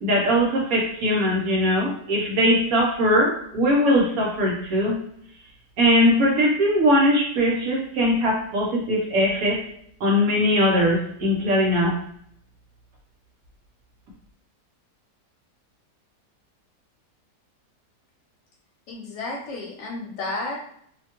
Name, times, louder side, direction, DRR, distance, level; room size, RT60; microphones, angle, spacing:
voice 1, 0.0-5.0 5.8-9.6 10.0-12.0, equal, 65° right, -1 dB, 1.0 m, -20 dB
voice 2, 18.9-20.6, left 2 dB, 80° left, -3 dB, 1.2 m, -32 dB
2.8 x 2.2 x 2.8 m, 0.68 s
omnidirectional pair, 1.8 m